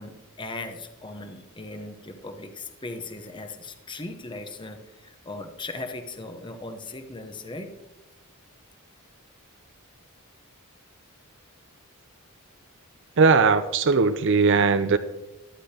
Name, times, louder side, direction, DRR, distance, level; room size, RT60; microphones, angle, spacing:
voice 1, 0.0-7.7, left 2 dB, 20° left, 6 dB, 0.8 m, -38 dB
voice 2, 13.2-15.0, right 4 dB, 55° right, 11 dB, 0.5 m, -19 dB
15.0 x 11.5 x 2.9 m, 1.0 s
head